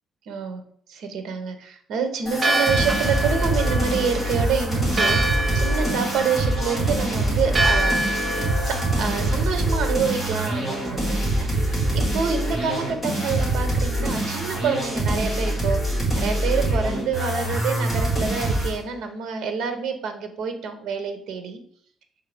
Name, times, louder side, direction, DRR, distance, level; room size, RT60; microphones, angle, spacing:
voice 1, 0.3-0.6 0.9-7.9 8.6-21.6, right 6 dB, 65° right, 7 dB, 0.9 m, -27 dB
sound 1, 2.3-18.8, right 1 dB, ahead, 2.0 m, -24 dB
Church bell, 2.3-11.2, right 1 dB, 20° right, 0.7 m, -28 dB
6.4 x 3.5 x 4.9 m, 0.62 s
cardioid pair, 180°, 0 cm